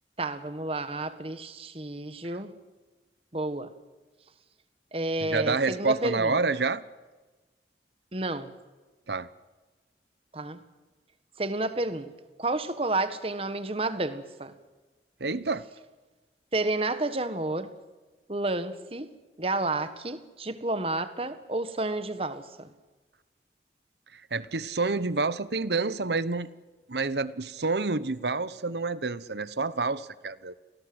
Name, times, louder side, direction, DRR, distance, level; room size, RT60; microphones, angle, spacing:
voice 1, 0.2-2.5 3.3-3.7 4.9-6.4 8.1-8.5 10.3-10.6 11.4-12.1 12.4-14.5 16.5-17.7 18.3-19.1 19.4-22.7, right 2 dB, 35° right, 11 dB, 1.6 m, -30 dB
voice 2, 5.2-6.8 9.1-9.3 15.2-15.7 24.1-26.5 26.9-30.5, right 3 dB, 75° right, 16 dB, 1.1 m, -28 dB
27.5 x 19.0 x 8.0 m, 1.3 s
head